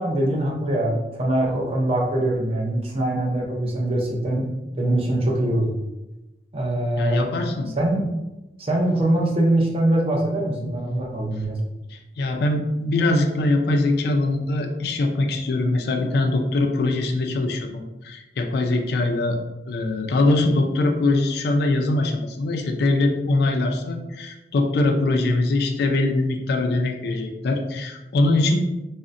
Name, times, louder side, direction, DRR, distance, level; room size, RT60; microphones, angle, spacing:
voice 1, 0.0-5.7 6.5-7.3 7.8-8.0 8.6-11.6, right 1 dB, 35° right, -1 dB, 0.6 m, -23 dB
voice 2, 7.0-7.7 12.2-19.4 19.7-28.6, left 2 dB, 60° left, 4 dB, 0.3 m, -22 dB
3.6 x 2.1 x 2.5 m, 1.0 s
head